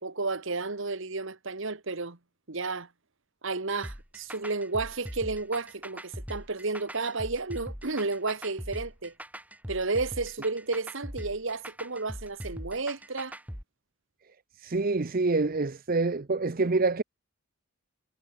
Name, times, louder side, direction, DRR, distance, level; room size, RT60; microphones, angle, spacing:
voice 1, 0.0-2.2 2.5-2.9 3.4-9.1 9.7-13.4, right 3 dB, 60° right, 1.5 m, -32 dB
sound 1, 3.8-13.6, equal, 5° right, 4.5 m, -41 dB
voice 2, 14.6-17.0, right 3 dB, 40° right, 0.7 m, -26 dB
head